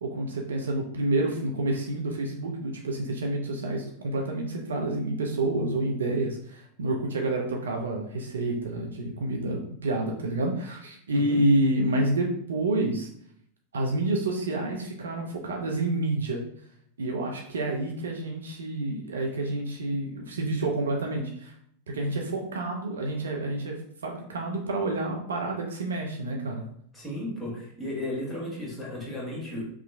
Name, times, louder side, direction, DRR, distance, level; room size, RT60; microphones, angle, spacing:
voice 1, 0.0-13.1 13.7-16.4 17.0-21.5 21.9-26.6, right 2 dB, 65° right, 1 dB, 0.5 m, -28 dB
voice 2, 26.9-29.7, left 1 dB, ahead, -5 dB, 1.3 m, -34 dB
2.9 x 2.4 x 3.2 m, 0.66 s
figure-of-eight pair, 90°, 0 cm